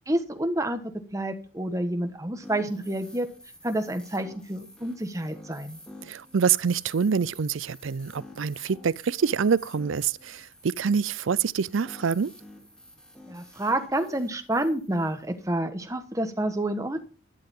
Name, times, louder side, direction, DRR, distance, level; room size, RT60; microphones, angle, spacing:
voice 1, 0.1-3.3 3.6-5.8 13.3-17.1, right 1 dB, 15° right, 1.3 m, -29 dB
sound 1, 2.4-15.5, left 1 dB, 5° left, 4.0 m, -50 dB
voice 2, 6.0-12.3, right 6 dB, 80° right, 0.5 m, -26 dB
12.5 x 12.0 x 3.7 m
head